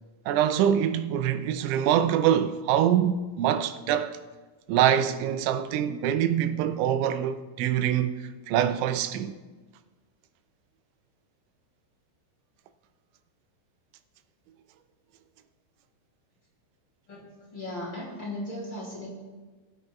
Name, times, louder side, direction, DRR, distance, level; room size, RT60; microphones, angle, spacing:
voice 1, 0.3-4.2 4.7-8.2 8.5-9.3, right 10 dB, 85° right, 3.0 m, -24 dB
voice 2, 17.1-19.1, left 1 dB, 30° left, 2.9 m, -37 dB
20.5 x 10.0 x 2.3 m
omnidirectional pair, 5.2 m